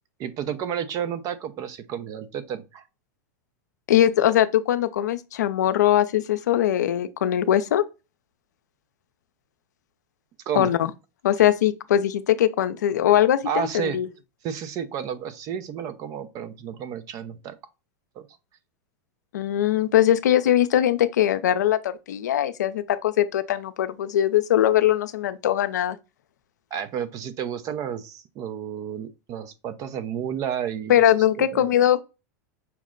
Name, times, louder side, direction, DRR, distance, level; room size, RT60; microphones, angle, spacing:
voice 1, 0.2-2.8 10.5-10.7 13.5-14.0 14.4-17.6 18.2-18.3 26.7-31.0 31.4-31.7, right 8 dB, 40° right, 0.6 m, -31 dB
voice 2, 3.9-7.8 10.5-10.9 11.2-14.1 19.3-26.0 30.9-32.0, left 11 dB, 85° left, 0.5 m, -21 dB
5.7 x 2.1 x 3.7 m
hypercardioid pair, 120°, 9 cm